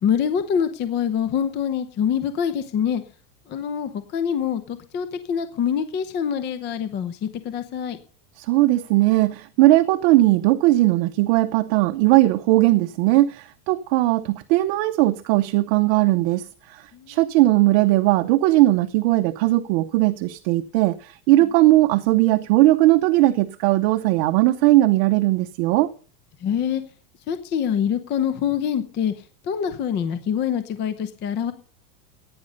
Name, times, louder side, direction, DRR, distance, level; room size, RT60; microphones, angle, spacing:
voice 1, 0.0-3.0 3.5-8.0 16.9-17.2 21.4-21.5 26.4-26.8 27.3-31.5, left 8 dB, 20° left, 0.8 m, -25 dB
voice 2, 8.4-25.9, right 17 dB, 40° right, 0.8 m, -18 dB
15.5 x 9.7 x 5.4 m
supercardioid pair, 160°, 48 cm